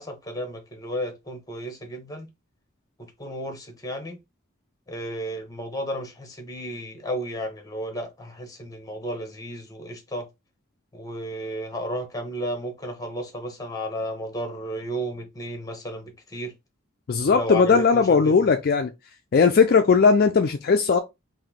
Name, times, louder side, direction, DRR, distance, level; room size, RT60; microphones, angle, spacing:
voice 1, 0.0-2.3 3.2-4.2 4.9-10.3 10.9-16.5 17.3-18.3, equal, 20° left, 1.0 m, -33 dB
voice 2, 17.1-18.9 19.3-21.0, left 5 dB, 50° left, 0.4 m, -18 dB
3.8 x 2.7 x 3.5 m
head